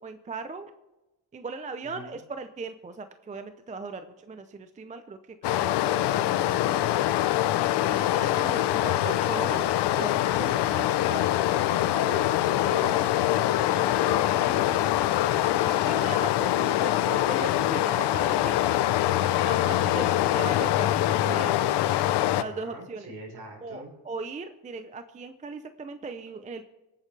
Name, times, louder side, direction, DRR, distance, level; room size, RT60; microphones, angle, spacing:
voice 1, 0.0-0.7 1.3-4.0 4.3-5.2 5.5-6.9 7.8-10.1 10.4-10.6 13.7-13.8 15.6-18.6 19.4-21.7 22.3-23.1 23.6-26.7, right 3 dB, 15° right, 9 dB, 0.5 m, -38 dB
Stream, 5.4-22.4, left 13 dB, 65° left, 0.7 m, -24 dB
voice 2, 10.7-13.4 13.8-14.9 22.1-23.9, right 2 dB, 55° right, 1 dB, 4.3 m, -42 dB
24.5 x 8.5 x 3.3 m, 1.0 s
cardioid pair, 135°, 45 cm